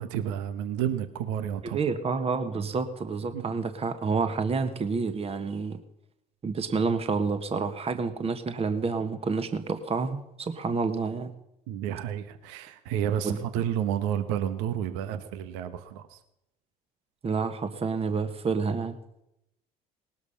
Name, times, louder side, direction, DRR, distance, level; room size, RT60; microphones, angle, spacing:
voice 1, 0.0-1.8 3.3-3.6 11.7-16.2, right 10 dB, 80° right, 11 dB, 1.1 m, -31 dB
voice 2, 1.6-5.8 6.4-11.3 13.2-13.4 17.2-19.0, right 4 dB, 35° right, 8 dB, 1.5 m, -29 dB
19.0 x 12.5 x 5.8 m, 0.86 s
hypercardioid pair, 75°, 18 cm